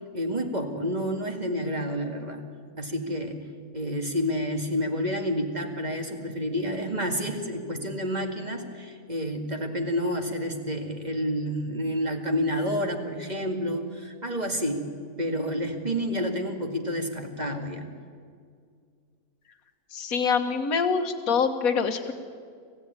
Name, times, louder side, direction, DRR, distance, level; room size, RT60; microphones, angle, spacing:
voice 1, 0.1-2.4 2.8-3.4 3.7-14.9 15.2-17.9, equal, 30° right, 3 dB, 2.3 m, -29 dB
voice 2, 19.9-22.1, left 5 dB, 75° left, 6 dB, 1.8 m, -25 dB
26.0 x 15.5 x 9.7 m, 2.1 s
omnidirectional pair, 1.5 m